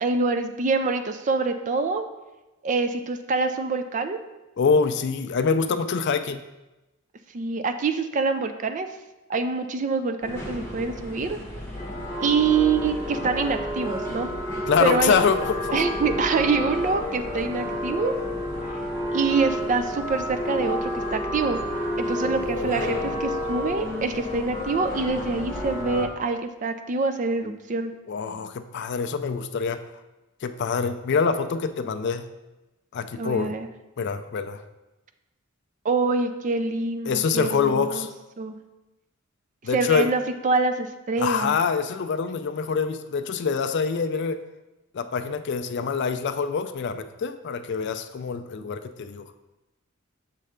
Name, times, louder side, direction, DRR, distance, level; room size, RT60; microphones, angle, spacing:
voice 1, 0.0-2.0 2.6-4.2 7.3-8.9 9.3-11.4 12.2-14.3 14.8-15.2 15.7-18.1 19.1-21.6 22.0-27.9 33.2-33.7 35.8-38.1 38.4-38.6 39.7-41.6, right 4 dB, 35° right, 9 dB, 0.4 m, -25 dB
voice 2, 4.6-6.4 14.7-15.8 22.2-23.0 27.4-27.5 28.1-29.8 30.4-32.3 32.9-33.5 34.0-34.6 37.1-38.1 39.6-40.1 41.2-44.4 44.9-49.3, left 5 dB, 55° left, 9 dB, 0.4 m, -25 dB
sound 1, 10.2-26.1, left 1 dB, 10° left, 1.0 m, -30 dB
6.8 x 3.2 x 5.0 m, 1.0 s
head